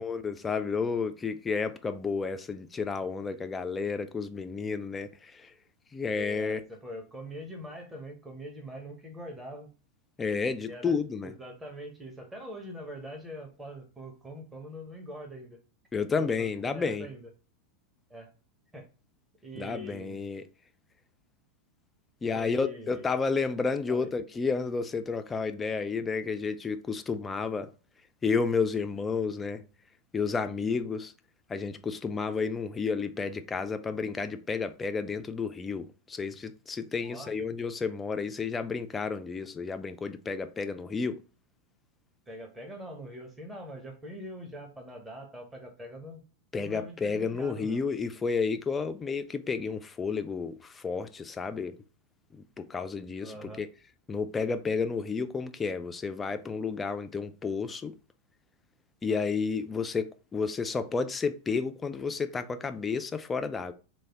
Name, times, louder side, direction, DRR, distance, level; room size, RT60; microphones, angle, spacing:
voice 1, 0.0-5.5 5.9-6.6 10.2-11.3 15.9-17.1 19.6-20.4 22.2-27.7 28.2-29.6 30.1-31.1 31.5-41.2 46.5-51.8 52.3-53.7 54.1-57.9 59.0-63.7, left 5 dB, 15° left, 0.3 m, -31 dB
voice 2, 6.0-9.7 10.6-10.9 11.2-15.6 16.2-17.3 18.1-18.3 18.7-18.9 19.4-20.2 22.3-23.1 23.9-24.1 37.0-37.3 42.3-46.2 46.6-47.8 53.2-53.6, equal, 10° right, 0.9 m, -43 dB
3.2 x 2.2 x 3.5 m
figure-of-eight pair, 90°, 0 cm